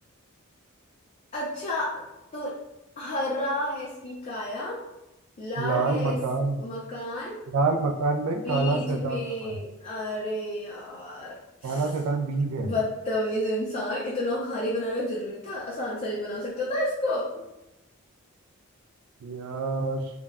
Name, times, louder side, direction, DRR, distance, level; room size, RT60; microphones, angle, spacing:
voice 1, 1.3-2.0 2.3-2.5 3.0-4.8 5.4-6.2 6.6-7.4 8.3-11.9 12.6-17.3, left 1 dB, 30° left, -6 dB, 0.4 m, -31 dB
voice 2, 5.6-6.6 7.5-9.5 11.6-12.7 19.2-20.1, right 3 dB, 85° right, 7 dB, 0.3 m, -27 dB
2.2 x 2.0 x 3.4 m, 0.93 s
head